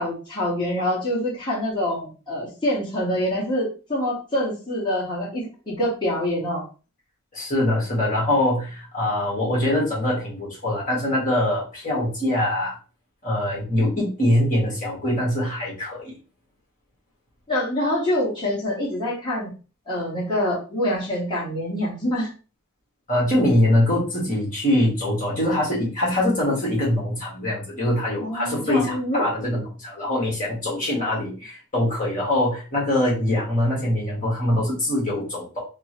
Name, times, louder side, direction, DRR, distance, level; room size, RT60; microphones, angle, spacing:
voice 1, 0.0-6.6 17.5-19.5 19.9-22.3 28.2-29.3, left 1 dB, 20° left, -7 dB, 1.6 m, -25 dB
voice 2, 7.3-12.8 13.2-16.1 23.1-35.6, left 1 dB, 35° left, -5 dB, 1.6 m, -23 dB
5.8 x 2.2 x 3.0 m, 0.34 s
head